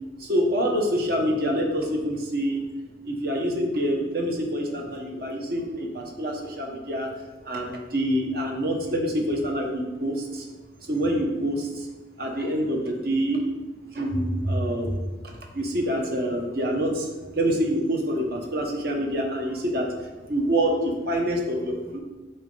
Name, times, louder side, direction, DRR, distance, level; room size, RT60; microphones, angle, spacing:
voice 1, 0.2-2.6 3.0-7.1 7.4-10.5 10.9-11.7 12.2-13.4 13.9-15.0 15.5-17.1 17.3-19.9 20.3-22.0, equal, 55° right, 1 dB, 1.1 m, -26 dB
7.1 x 4.1 x 3.9 m, 1.2 s
head